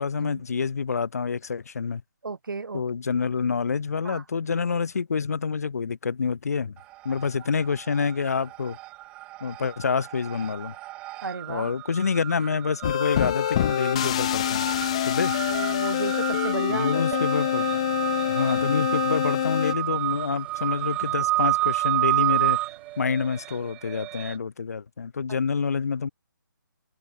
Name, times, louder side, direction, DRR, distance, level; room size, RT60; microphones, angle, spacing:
voice 1, 0.0-2.0 2.7-6.7 7.0-8.8 9.4-10.7 11.5-14.7 15.0-15.3 16.7-17.7 18.3-22.6 23.0-26.1, left 5 dB, 45° left, 1.0 m, -27 dB
voice 2, 2.2-2.8 4.0-4.2 11.2-11.7 15.5-17.2, right 4 dB, 75° right, 1.5 m, -33 dB
sound 1, 6.8-7.5 7.7-24.3, right 18 dB, 10° right, 1.6 m, -30 dB
sound 2, 12.8-19.7, left 12 dB, 15° left, 0.9 m, -26 dB
sound 3, 17.1-23.7, right 8 dB, 30° right, 3.7 m, -49 dB
hypercardioid pair, 175°, 11 cm